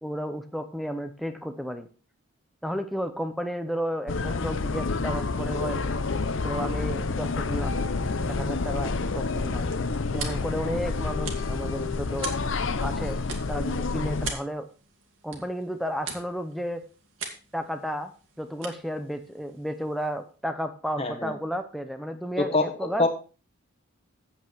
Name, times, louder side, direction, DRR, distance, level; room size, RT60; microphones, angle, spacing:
voice 1, 0.0-1.9 2.6-5.8 6.4-7.8 8.2-9.7 10.1-12.3 12.8-13.2 13.5-14.7 15.2-16.8 17.5-18.1 18.4-23.1, equal, ahead, 7 dB, 0.7 m, -33 dB
sound 1, 4.1-14.3, left 3 dB, 60° left, 0.7 m, -28 dB
sound 2, 9.1-20.4, right 5 dB, 60° right, 2.0 m, -43 dB
voice 2, 21.0-21.3 22.4-23.1, left 2 dB, 25° left, 5 dB, 1.3 m, -25 dB
8.6 x 8.2 x 4.5 m, 0.35 s
head